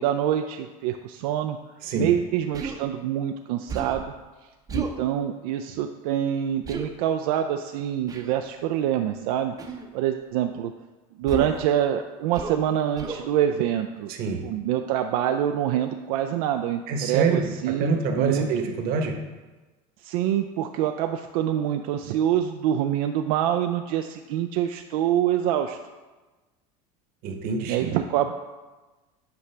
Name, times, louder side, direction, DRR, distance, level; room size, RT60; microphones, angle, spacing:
voice 1, 0.0-1.6 1.9-4.1 4.7-9.5 9.9-10.7 11.2-14.1 14.4-18.5 20.0-25.8 27.7-28.3, right 10 dB, 80° right, 6 dB, 0.4 m, -25 dB
Human voice, 2.5-2.8 3.7-4.1 4.7-5.0 6.7-6.9 8.1-8.4 9.6-9.9 11.3-11.7 12.3-12.7 13.0-13.3, right 5 dB, 20° right, 0.6 m, -33 dB
voice 2, 14.1-14.4 16.9-19.1 27.2-27.9, right 4 dB, 50° right, 4 dB, 1.0 m, -26 dB
8.2 x 5.0 x 3.3 m, 1.2 s
supercardioid pair, 130°, 19 cm